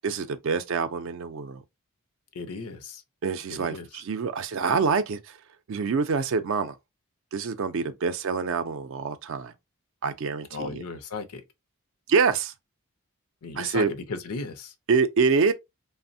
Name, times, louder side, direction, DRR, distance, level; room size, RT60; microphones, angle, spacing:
voice 1, 0.0-1.6 3.2-5.4 5.7-6.8 7.3-9.5 10.0-10.8 12.1-12.5 13.6-13.9 14.9-15.5, right 5 dB, 60° right, 0.4 m, -26 dB
voice 2, 2.3-3.0 3.5-4.0 10.5-11.4 13.4-14.7, left 3 dB, 85° left, 0.6 m, -36 dB
3.2 x 2.1 x 2.6 m
head